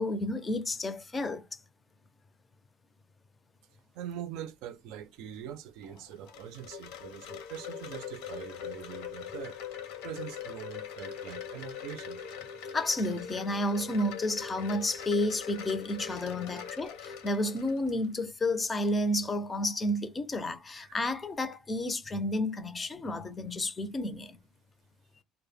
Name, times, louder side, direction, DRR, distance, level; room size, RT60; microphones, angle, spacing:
voice 1, 0.0-1.6 12.7-24.4, left 1 dB, 20° left, 0.5 m, -31 dB
voice 2, 3.9-9.6 10.0-12.2 16.5-16.7 20.8-21.0, right 10 dB, 75° right, 0.4 m, -43 dB
Wind chime, 5.8-18.1, left 8 dB, 80° left, 0.8 m, -42 dB
2.2 x 2.0 x 3.2 m
cardioid pair, 120°, 0 cm